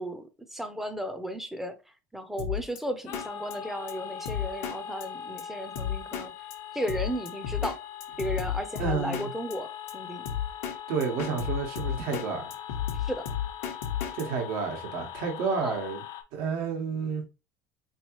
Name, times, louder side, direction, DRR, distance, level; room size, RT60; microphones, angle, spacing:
voice 1, 0.0-1.8 2.1-6.3 6.7-7.8 8.2-10.3 13.1-13.2 15.6-15.7, equal, 5° right, 0.6 m, -34 dB
Drum kit, 2.4-2.8 3.1-3.3 3.5-3.6 3.9-4.0 4.3-4.8 5.0-5.1 5.4-5.5 5.8-6.3 6.5-6.6 6.9-7.8 8.0-9.3 9.5-9.6 9.9-10.0 10.3-10.8 11.0-12.3 12.5-14.2, left 9 dB, 85° left, 0.8 m, -32 dB
sound 1, 3.1-16.2, left 9 dB, 55° left, 0.6 m, -41 dB
voice 2, 8.8-9.3 10.9-12.5 14.1-16.0 16.3-17.2, right 5 dB, 70° right, 1.3 m, -30 dB
3.7 x 3.1 x 3.0 m
supercardioid pair, 120°, 7 cm